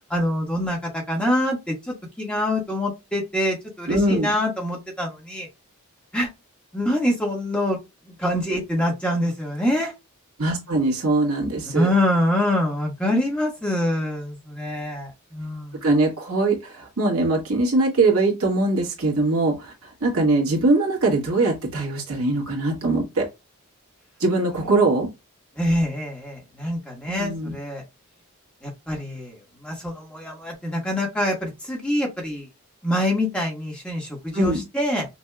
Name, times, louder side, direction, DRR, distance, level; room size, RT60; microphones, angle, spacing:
voice 1, 0.1-5.5 6.1-6.3 6.7-7.8 8.1-9.9 11.7-15.8 25.6-27.8 28.6-29.4 29.6-32.5 32.8-35.1, left 1 dB, 5° left, 1.4 m, -25 dB
voice 2, 3.9-4.3 10.4-11.9 15.8-23.3 24.2-25.1 27.1-27.6 34.3-34.6, right 2 dB, 75° right, 1.9 m, -22 dB
5.8 x 2.7 x 2.3 m
head